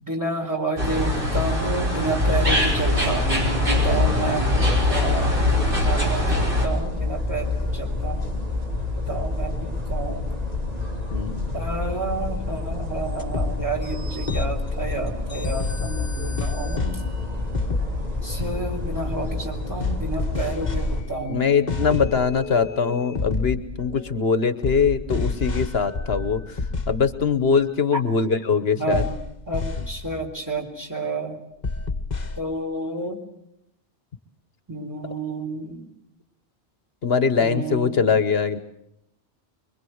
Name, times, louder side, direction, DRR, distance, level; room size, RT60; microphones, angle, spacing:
voice 1, 0.0-8.3 9.1-10.3 11.5-17.0 18.2-21.5 27.9-28.0 28.7-29.1 29.5-31.4 32.4-33.2 34.7-35.8 37.4-38.1, right 2 dB, 15° right, 1 dB, 4.4 m, -30 dB
sound 1, 0.8-6.7, left 1 dB, 55° right, 5.7 m, -22 dB
sound 2, 2.3-21.0, left 2 dB, 35° right, 4.3 m, -28 dB
voice 2, 3.7-4.2 11.1-11.4 21.3-26.4 26.9-29.0 37.0-38.6, left 5 dB, 65° left, 11 dB, 1.4 m, -22 dB
sound 3, 13.2-24.3 24.6-27.4 28.9-30.3 31.6-32.4, left 3 dB, 40° left, 1.4 m, -30 dB
25.0 x 23.0 x 7.9 m, 0.77 s
omnidirectional pair, 1.1 m